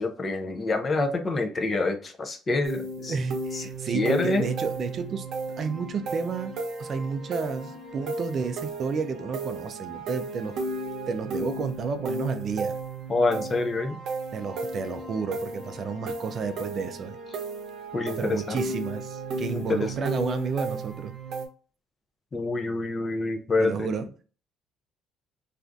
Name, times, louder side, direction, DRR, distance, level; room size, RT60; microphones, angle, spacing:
voice 1, 0.0-3.2 3.5-3.7 3.9-4.5 13.1-14.0 17.9-18.6 19.5-19.9 22.3-23.9, left 3 dB, 25° left, 0.4 m, -27 dB
sound 1, 2.6-21.5, right 2 dB, 60° right, 0.8 m, -34 dB
voice 2, 3.1-5.3 5.6-6.5 6.8-10.6 11.1-12.8 14.3-17.2 18.2-21.1 23.6-24.2, right 5 dB, 40° right, 0.3 m, -31 dB
3.3 x 2.4 x 2.5 m
cardioid pair, 145°, 0 cm